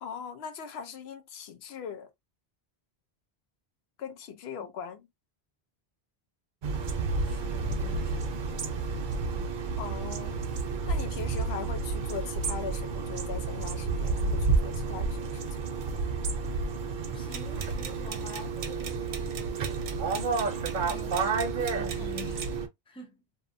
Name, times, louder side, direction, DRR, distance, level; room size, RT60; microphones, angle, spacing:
voice 1, 0.0-2.1 4.0-5.1 9.8-10.4 10.9-15.4, left 7 dB, 85° left, 0.9 m, -40 dB
sound 1, 6.6-22.7, right 4 dB, 60° right, 0.7 m, -31 dB
voice 2, 7.2-8.4 17.1-19.4 20.8-22.5 22.9-23.2, left 3 dB, 5° left, 0.5 m, -47 dB
sound 2, 17.3-22.5, right 7 dB, 85° right, 0.8 m, -42 dB
2.7 x 2.0 x 2.5 m
omnidirectional pair, 1.0 m